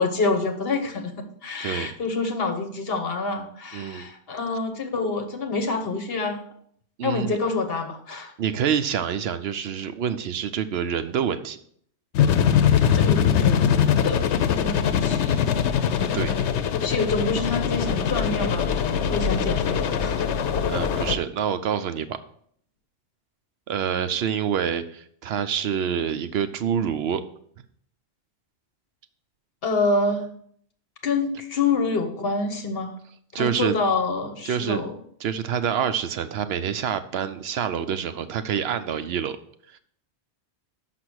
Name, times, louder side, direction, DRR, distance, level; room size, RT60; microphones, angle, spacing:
voice 1, 0.0-6.4 7.0-8.3 12.9-14.2 14.6-15.6 16.8-18.7 19.1-20.2 29.6-30.3 31.0-32.9 33.3-34.9, left 3 dB, 60° left, 5 dB, 1.2 m, -27 dB
voice 2, 1.6-1.9 3.7-4.1 4.5-4.6 7.0-7.4 8.4-11.6 16.1-16.4 20.2-20.3 20.7-22.2 23.7-27.2 33.3-33.7 34.5-34.8 35.2-39.4 39.7-39.8, right 8 dB, 70° right, 11 dB, 0.8 m, -27 dB
sound 1, 12.1-21.2, left 8 dB, 85° left, 0.9 m, -22 dB
5.9 x 5.9 x 6.2 m, 0.64 s
omnidirectional pair, 1.1 m